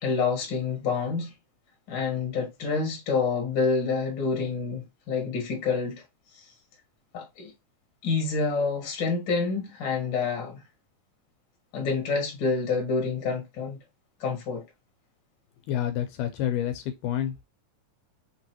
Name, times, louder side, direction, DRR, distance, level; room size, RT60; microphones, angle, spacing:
voice 1, 0.0-1.3 1.9-6.0 6.4-6.5 7.1-7.5 8.0-10.6 11.7-13.8 14.2-14.6, left 4 dB, 45° left, 1.8 m, -28 dB
voice 2, 15.7-17.4, left 11 dB, 80° left, 2.1 m, -28 dB
5.8 x 3.0 x 2.9 m
omnidirectional pair, 3.7 m